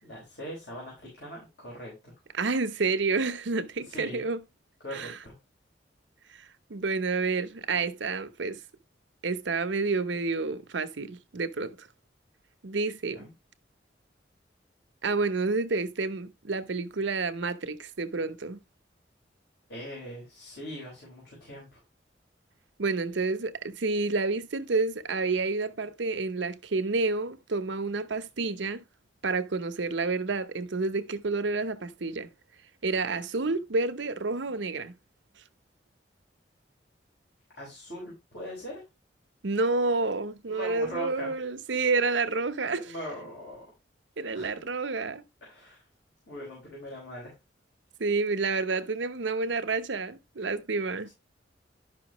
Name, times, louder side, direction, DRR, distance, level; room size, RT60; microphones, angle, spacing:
voice 1, 0.0-2.1 3.8-4.2 4.8-5.3 13.0-13.3 19.7-21.8 37.5-38.8 40.5-41.3 42.8-43.7 44.3-44.6 45.4-45.9 46.3-47.4 51.0-51.1, equal, 65° left, 4.6 m, -41 dB
voice 2, 2.3-4.4 4.9-5.1 6.4-8.6 9.2-11.9 12.6-13.3 15.0-18.6 22.8-28.8 29.2-32.3 32.8-34.9 39.4-42.9 44.2-45.2 48.0-51.1, right 3 dB, 85° right, 0.8 m, -29 dB
11.5 x 5.7 x 3.0 m
head